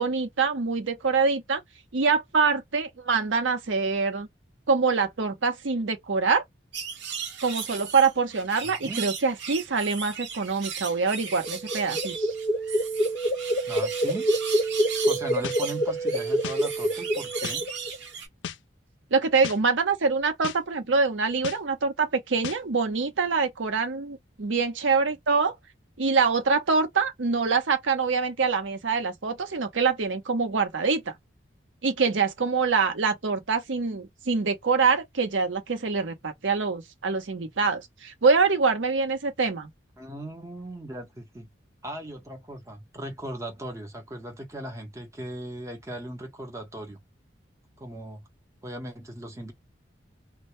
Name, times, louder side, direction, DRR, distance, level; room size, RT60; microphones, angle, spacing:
voice 1, 0.0-1.6 1.9-4.3 4.7-6.4 7.4-12.3 19.1-25.6 26.0-31.1 31.8-39.7, right 4 dB, 90° right, 0.7 m, -25 dB
sound 1, 6.7-18.3, right 7 dB, 70° right, 1.0 m, -37 dB
voice 2, 8.8-9.1 13.7-14.3 15.0-17.7 40.0-41.5 41.8-47.0 47.8-48.2 48.6-49.5, right 1 dB, 15° right, 0.8 m, -38 dB
sound 2, 11.4-18.0, right 1 dB, 25° left, 0.5 m, -27 dB
sound 3, 15.4-15.6 16.4-16.6 17.4-17.6 18.4-18.6 19.4-19.6 20.4-20.6 21.4-21.6 22.4-22.6, left 8 dB, 75° left, 0.4 m, -34 dB
2.1 x 2.1 x 2.9 m
head